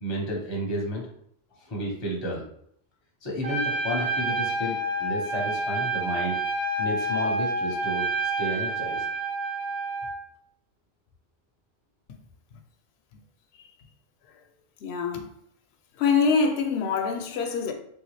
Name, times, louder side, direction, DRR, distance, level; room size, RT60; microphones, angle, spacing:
voice 1, 0.0-1.1 1.7-2.4 3.2-6.4 6.8-9.0, equal, 25° left, 0.7 m, -32 dB
Trumpet, 3.4-10.1, right 2 dB, 50° right, 0.7 m, -28 dB
voice 2, 14.8-15.3 16.0-17.7, left 5 dB, 65° left, 0.7 m, -24 dB
3.2 x 2.7 x 3.1 m
omnidirectional pair, 1.3 m